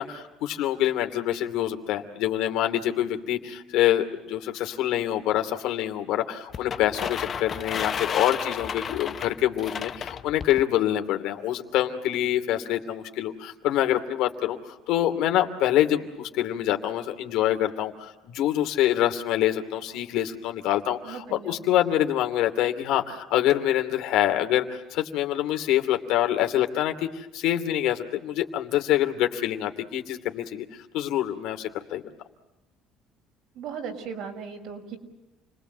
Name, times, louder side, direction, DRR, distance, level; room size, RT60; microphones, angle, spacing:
voice 1, 0.0-30.6 30.9-32.0, left 12 dB, 75° left, 6 dB, 2.7 m, -26 dB
sound 1, 6.5-10.6, left 7 dB, 35° left, 0.8 m, -32 dB
voice 2, 21.0-21.6 33.5-35.0, right 6 dB, 70° right, 3 dB, 6.0 m, -37 dB
29.5 x 21.0 x 8.0 m, 1.0 s
cardioid pair, 135°, 0 cm